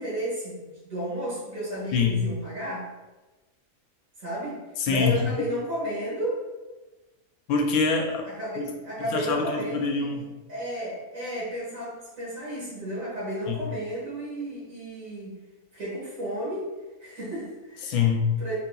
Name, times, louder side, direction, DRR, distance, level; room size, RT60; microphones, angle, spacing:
voice 1, 0.0-2.9 4.2-6.4 8.2-10.2 10.5-15.4 15.7-16.7 17.0-18.0 18.4-18.6, right 1 dB, 65° right, -7 dB, 2.0 m, -33 dB
voice 2, 4.8-5.3 7.5-8.2 8.6-8.7 9.1-10.3 13.5-13.6 17.8-18.3, left 5 dB, 85° left, 3 dB, 1.1 m, -24 dB
4.1 x 3.9 x 2.3 m, 1.1 s
omnidirectional pair, 1.5 m